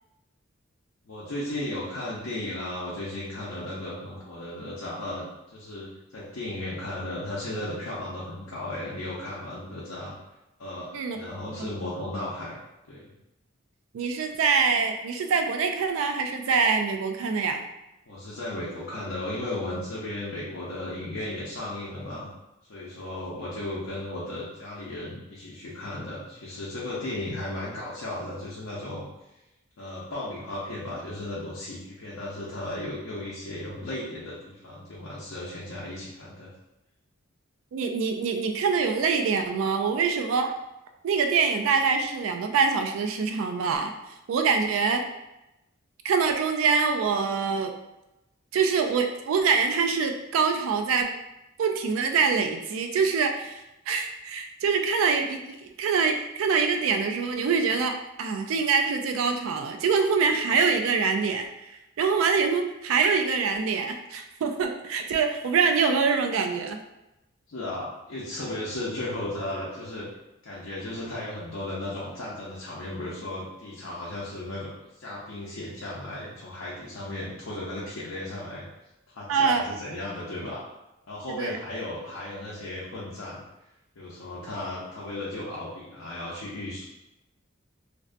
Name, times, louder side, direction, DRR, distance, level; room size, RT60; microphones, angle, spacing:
voice 1, 1.0-10.2 10.6-12.6 12.9-13.1 18.1-22.3 22.6-29.0 29.8-36.5 67.5-70.1 70.4-78.6 79.1-80.6 81.1-83.4 83.9-86.9, left 1 dB, 80° left, -7 dB, 0.6 m, -35 dB
voice 2, 13.9-17.6 37.7-40.5 41.0-43.9 44.3-45.0 46.0-47.7 48.5-51.1 51.6-61.5 62.0-66.8 79.3-79.6 81.4-81.6, right 5 dB, 80° right, 5 dB, 0.3 m, -25 dB
2.5 x 2.1 x 2.5 m, 0.94 s
head